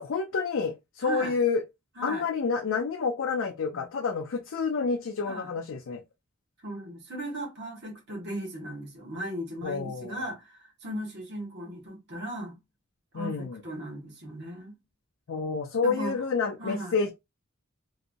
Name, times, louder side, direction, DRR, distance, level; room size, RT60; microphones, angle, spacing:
voice 1, 0.0-1.6 2.0-6.0 9.6-10.3 13.1-13.6 15.3-17.1, left 5 dB, 65° left, 0.5 m, -29 dB
voice 2, 1.0-1.3 2.0-2.2 5.2-5.5 6.6-12.6 13.1-14.7 15.8-16.2 16.6-16.9, right 1 dB, 55° right, 1.5 m, -37 dB
3.1 x 2.8 x 2.5 m
head